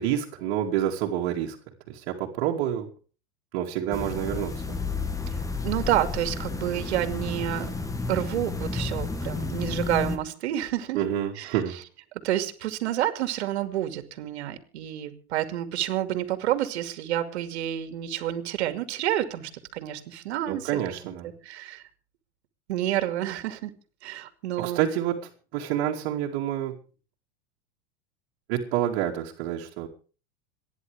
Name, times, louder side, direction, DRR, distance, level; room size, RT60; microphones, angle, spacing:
voice 1, 0.0-1.6 1.9-2.9 3.5-4.8 10.9-11.8 20.5-21.3 24.6-25.2 25.5-26.8 28.5-29.9, right 11 dB, 60° right, -2 dB, 2.6 m, -28 dB
sound 1, 3.9-10.2, left 3 dB, 10° left, 1.5 m, -31 dB
voice 2, 5.6-7.7 8.1-11.0 11.4-11.5 12.2-20.8 21.4-21.8 22.7-23.7 24.0-24.8, right 12 dB, 80° right, 8 dB, 2.5 m, -29 dB
27.0 x 10.5 x 3.5 m, 0.38 s
supercardioid pair, 120°, 33 cm